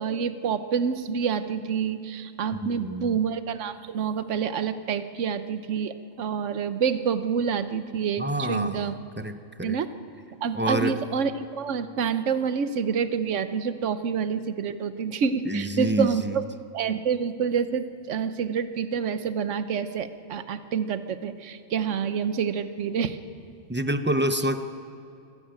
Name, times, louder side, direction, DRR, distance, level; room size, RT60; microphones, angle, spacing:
voice 1, 0.0-9.0 9.6-9.9 10.4-16.4 16.7-23.2, right 6 dB, 65° right, 11 dB, 1.2 m, -27 dB
voice 2, 2.6-3.2 8.2-9.8 10.5-11.0 15.5-16.4 23.7-24.6, right 1 dB, 10° right, 9 dB, 0.6 m, -27 dB
24.5 x 15.5 x 8.8 m, 2.5 s
omnidirectional pair, 1.4 m